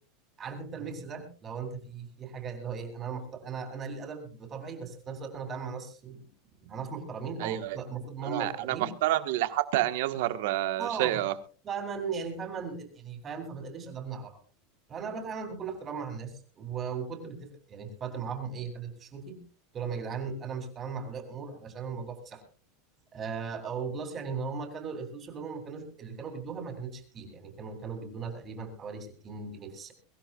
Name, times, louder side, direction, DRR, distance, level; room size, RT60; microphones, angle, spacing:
voice 1, 0.4-6.3 6.6-8.9 10.8-11.2 11.6-14.4 14.9-19.4 19.7-22.4 23.1-29.9, right 5 dB, 20° right, 5 dB, 3.1 m, -37 dB
voice 2, 7.4-7.8 8.2-11.3, right 15 dB, 60° right, 10 dB, 1.4 m, -29 dB
23.0 x 15.0 x 2.4 m, 0.36 s
supercardioid pair, 175°, 0 cm